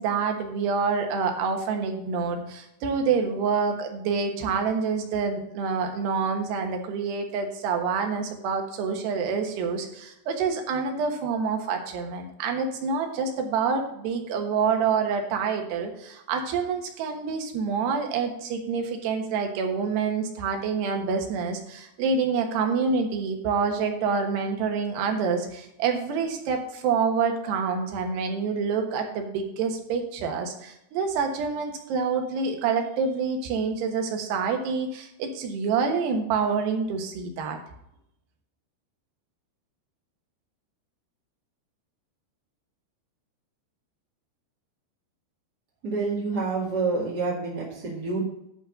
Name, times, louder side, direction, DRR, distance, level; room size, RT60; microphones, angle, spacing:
voice 1, 0.0-37.6, right 5 dB, 80° right, 4 dB, 3.4 m, -27 dB
voice 2, 45.8-48.2, right 3 dB, 35° right, -5 dB, 1.9 m, -28 dB
11.0 x 4.1 x 6.4 m, 0.79 s
omnidirectional pair, 4.8 m